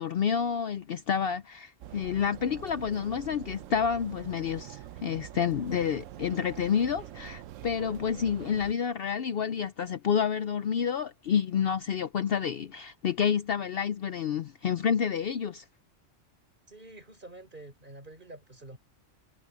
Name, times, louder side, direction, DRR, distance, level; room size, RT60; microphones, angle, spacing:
voice 1, 0.0-15.6, left 7 dB, 60° left, 0.7 m, -29 dB
sound 1, 1.8-8.7, right 13 dB, 90° right, 0.9 m, -45 dB
voice 2, 16.7-18.8, right 2 dB, 40° right, 4.6 m, -48 dB
omnidirectional pair, 1.3 m